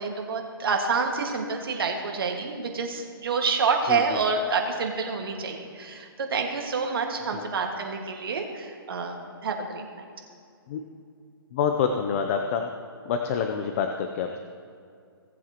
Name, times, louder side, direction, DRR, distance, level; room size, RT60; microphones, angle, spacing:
voice 1, 0.0-10.1, right 4 dB, 65° right, 2 dB, 1.9 m, -28 dB
voice 2, 11.5-12.7 13.1-14.4, left 6 dB, 35° left, 5 dB, 0.6 m, -26 dB
18.0 x 7.7 x 3.0 m, 2.4 s
hypercardioid pair, 150°, 13 cm